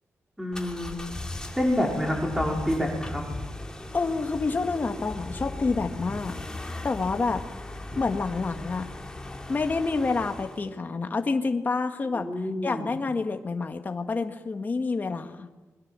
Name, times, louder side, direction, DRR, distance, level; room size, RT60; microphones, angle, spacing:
voice 1, 0.4-1.0 1.6-3.2 7.9-8.0 12.1-12.9, left 1 dB, 5° right, -1 dB, 4.5 m, -27 dB
sound 1, 0.5-10.7, left 2 dB, 15° left, 2.4 m, -38 dB
voice 2, 3.9-6.4 6.8-7.4 8.0-8.9 9.5-12.3 12.6-15.5, left 4 dB, 35° left, 6 dB, 1.6 m, -28 dB
27.0 x 22.0 x 7.6 m, 1.2 s
wide cardioid pair, 140°, 5 cm